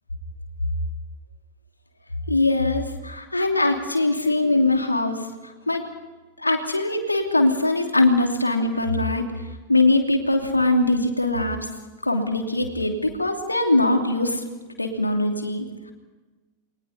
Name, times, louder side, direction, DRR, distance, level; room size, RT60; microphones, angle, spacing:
voice 1, 2.3-5.8 6.4-9.3 9.7-11.7 12.0-14.4 14.8-15.9, left 2 dB, 85° left, 3 dB, 2.8 m, -22 dB
30.0 x 23.0 x 4.2 m, 1.2 s
figure-of-eight pair, 90°, 0 cm